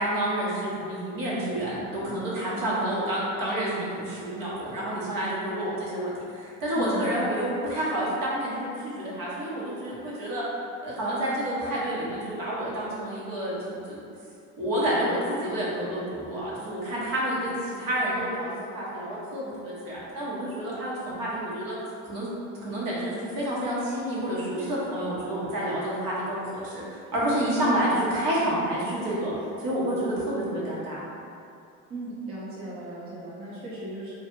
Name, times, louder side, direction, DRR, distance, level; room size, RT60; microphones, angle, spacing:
voice 1, 0.0-10.4 10.8-14.0 14.6-21.8 22.0-22.3 22.6-29.3 29.6-31.0, right 1 dB, 60° right, -7 dB, 1.2 m, -29 dB
voice 2, 6.8-7.5 27.6-27.8 31.9-34.1, right 1 dB, 35° right, -8 dB, 0.8 m, -36 dB
2.7 x 2.5 x 3.6 m, 2.6 s
supercardioid pair, 75°, 38 cm